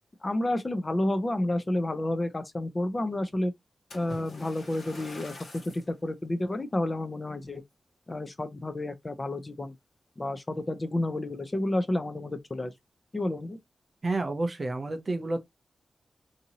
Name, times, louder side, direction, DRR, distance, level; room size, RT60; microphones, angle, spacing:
voice 1, 0.2-3.5 3.9-7.6 8.1-9.8 10.2-12.7 13.1-13.6, left 1 dB, 25° left, 0.4 m, -30 dB
Splash splatter, 3.9-5.9 6.6-6.8 7.4-7.5, left 2 dB, 85° left, 1.3 m, -46 dB
voice 2, 14.0-15.4, right 2 dB, 35° right, 0.4 m, -30 dB
2.6 x 2.6 x 2.8 m
wide cardioid pair, 165°, 0 cm